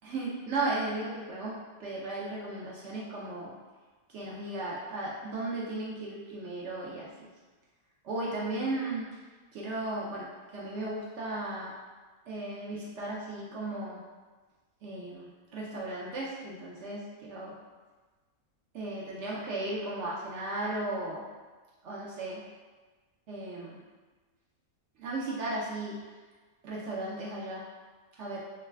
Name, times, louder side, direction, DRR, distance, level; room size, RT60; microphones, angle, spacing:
voice 1, 0.0-1.5 1.8-3.5 4.1-7.3 8.0-9.1 9.5-11.7 12.3-14.0 14.8-17.5 18.7-21.2 21.8-22.4 23.3-23.8 25.0-26.0 26.6-27.6 28.2-28.4, right 2 dB, 65° right, -4 dB, 0.8 m, -35 dB
3.1 x 2.4 x 3.2 m, 1.3 s
omnidirectional pair, 1.4 m